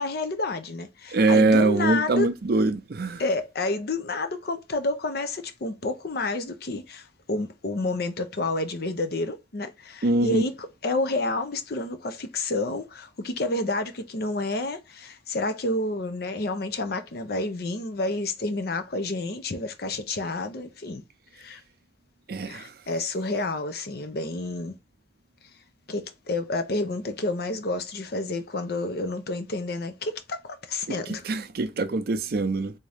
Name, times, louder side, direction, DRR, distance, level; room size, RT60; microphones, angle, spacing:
voice 1, 0.0-2.3 3.2-21.0 21.3-21.6 22.4-24.8 25.9-31.2, left 2 dB, 55° left, 0.6 m, -29 dB
voice 2, 1.1-3.2 10.0-10.4 22.3-22.7 31.2-32.7, right 3 dB, 50° right, 0.5 m, -23 dB
3.6 x 2.7 x 3.4 m
head